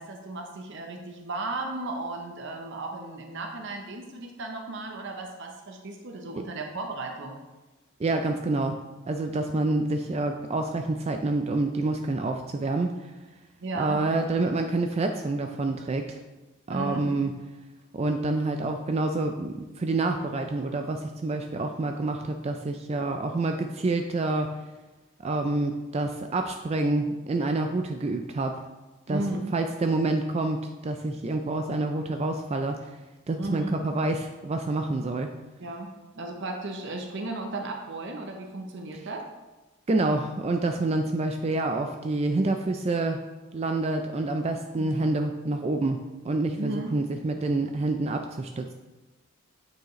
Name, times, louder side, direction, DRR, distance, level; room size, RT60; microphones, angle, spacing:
voice 1, 0.0-7.4 13.6-14.0 16.7-17.2 29.1-29.5 33.4-33.8 35.6-39.3 46.6-47.0, right 2 dB, 55° right, 2 dB, 0.7 m, -35 dB
voice 2, 8.0-8.8 9.1-13.1 13.8-16.2 16.7-17.3 17.9-24.5 25.2-28.6 29.1-29.2 29.5-33.0 33.3-35.3 39.9-43.2 43.5-48.7, right 2 dB, 30° right, 5 dB, 0.3 m, -27 dB
8.9 x 4.8 x 3.1 m, 1.1 s
head